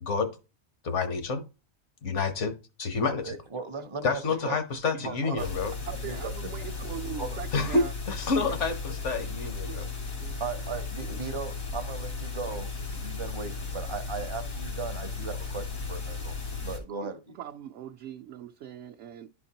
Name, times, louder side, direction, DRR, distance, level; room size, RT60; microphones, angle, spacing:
voice 1, 0.8-1.4 2.0-2.5 2.8-3.3 4.0-5.7 7.5-9.9, left 4 dB, 65° left, 1.3 m, -28 dB
voice 2, 3.2-4.6 5.0-5.5 6.1-6.5 6.9-7.4 10.4-16.3 16.6-17.2, right 5 dB, 30° right, 0.6 m, -37 dB
voice 3, 4.9-7.9 8.3-8.5 9.7-9.8 10.2-10.4 11.1-11.2 16.7-19.3, right 10 dB, 70° right, 0.8 m, -42 dB
sound 1, 5.4-16.8, left 4 dB, 80° left, 2.6 m, -35 dB
11.5 x 4.5 x 2.8 m
omnidirectional pair, 1.4 m